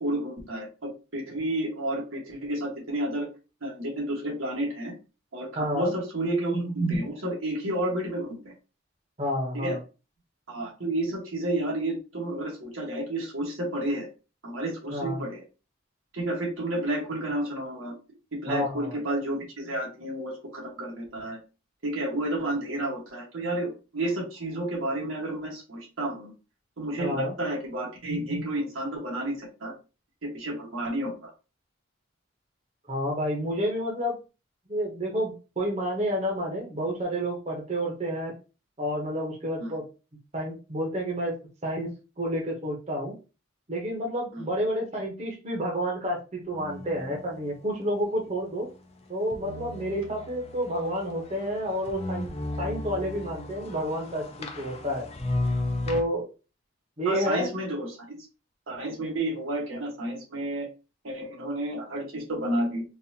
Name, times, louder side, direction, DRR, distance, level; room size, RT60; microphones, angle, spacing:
voice 1, 0.0-3.3 3.6-4.9 5.3-8.5 9.5-9.8 10.5-14.1 14.4-15.4 16.1-17.9 18.4-21.4 21.8-26.3 26.8-29.7 30.2-31.3 39.6-39.8 44.3-44.5 57.0-58.2 58.7-60.7 61.0-62.8, right 1 dB, 85° right, -1 dB, 1.4 m, -31 dB
voice 2, 5.6-5.9 9.2-9.8 14.9-15.2 18.5-19.0 27.0-27.3 32.9-34.2 34.7-38.3 38.8-39.8 40.3-41.4 41.6-41.9 42.2-43.1 43.7-48.7 49.1-52.3 52.6-55.1 55.9-56.3 57.0-57.5, equal, 35° right, -1 dB, 0.9 m, -30 dB
sound 1, 46.5-47.5 49.3-56.0, left 2 dB, 30° left, 0.5 m, -35 dB
4.0 x 2.5 x 2.7 m, 0.31 s
head